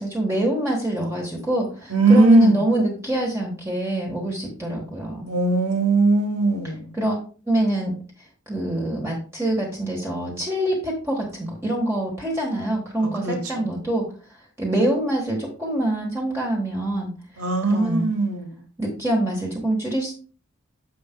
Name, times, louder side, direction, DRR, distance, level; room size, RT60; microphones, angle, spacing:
voice 1, 0.0-5.3 6.9-7.2 7.5-7.9 8.5-14.1 14.6-17.1 17.7-18.1 18.8-20.1, right 1 dB, 10° right, 1.3 m, -25 dB
voice 2, 1.9-2.6 5.3-6.9 13.0-13.6 17.4-18.6, right 2 dB, 90° right, 1.9 m, -19 dB
9.4 x 7.1 x 2.2 m
head